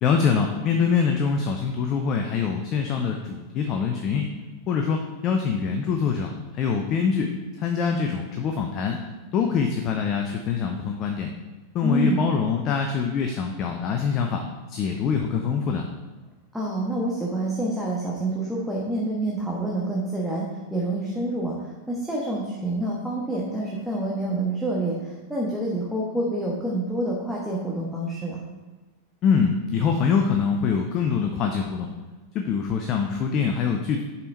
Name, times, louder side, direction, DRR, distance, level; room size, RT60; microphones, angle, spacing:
voice 1, 0.0-4.3 4.7-7.3 7.6-9.0 9.3-11.3 11.7-14.4 14.7-15.9 29.2-31.9 32.3-34.0, left 6 dB, 35° left, 3 dB, 0.7 m, -24 dB
voice 2, 11.8-12.2 16.5-21.5 21.9-28.4, right 1 dB, ahead, -5 dB, 1.2 m, -27 dB
6.8 x 5.5 x 4.6 m, 1.2 s
figure-of-eight pair, 90°, 0 cm